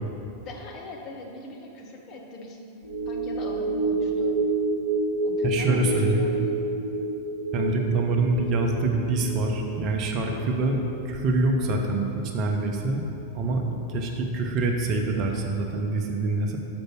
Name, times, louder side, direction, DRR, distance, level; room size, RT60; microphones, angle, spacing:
voice 1, 0.4-2.6 3.0-4.4 5.2-6.6, left 1 dB, 35° left, 0 dB, 1.1 m, -40 dB
sound 1, 2.8-13.4 13.8-13.9, right 3 dB, 80° right, 0.7 m, -30 dB
voice 2, 5.4-6.2 7.5-13.0 13.3-16.6, right 2 dB, 35° right, 2 dB, 0.8 m, -25 dB
6.6 x 5.2 x 5.9 m, 2.8 s
figure-of-eight pair, 90°, 0 cm